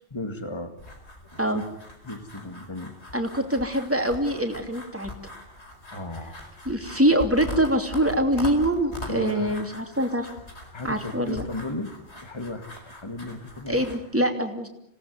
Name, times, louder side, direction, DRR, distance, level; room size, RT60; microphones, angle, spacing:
voice 1, 0.1-0.7 1.3-1.6 2.0-3.0 5.9-6.5 9.1-9.6 10.7-11.9 12.2-13.9, left 2 dB, 25° left, 7 dB, 2.2 m, -35 dB
sound 1, 0.8-14.0, left 2 dB, 65° left, 4.9 m, -41 dB
voice 2, 3.1-5.3 6.7-10.3 10.8-11.4 13.7-14.7, right 1 dB, 10° right, 4 dB, 2.9 m, -24 dB
26.5 x 18.0 x 9.5 m, 0.82 s
omnidirectional pair, 1.2 m